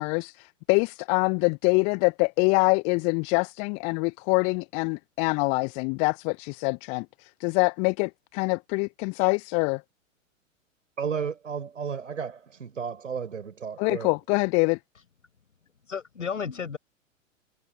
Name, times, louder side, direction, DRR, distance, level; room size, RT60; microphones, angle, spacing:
voice 1, 0.0-9.8 13.8-14.8, left 35 dB, 20° left, 0.4 m, -25 dB
voice 2, 11.0-14.1, right 6 dB, 70° right, 5.3 m, -33 dB
voice 3, 15.8-16.8, left 6 dB, 70° left, 5.7 m, -33 dB
figure-of-eight pair, 100°, 39 cm